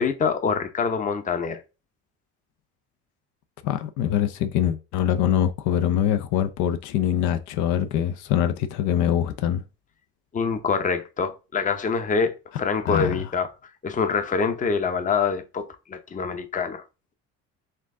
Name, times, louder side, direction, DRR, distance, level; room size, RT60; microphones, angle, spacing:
voice 1, 0.0-1.6 10.3-13.5 13.8-16.8, left 5 dB, 25° left, 0.7 m, -25 dB
voice 2, 3.6-9.6 12.9-13.3, left 10 dB, 75° left, 0.6 m, -24 dB
4.4 x 2.5 x 3.6 m
supercardioid pair, 100°, 30 cm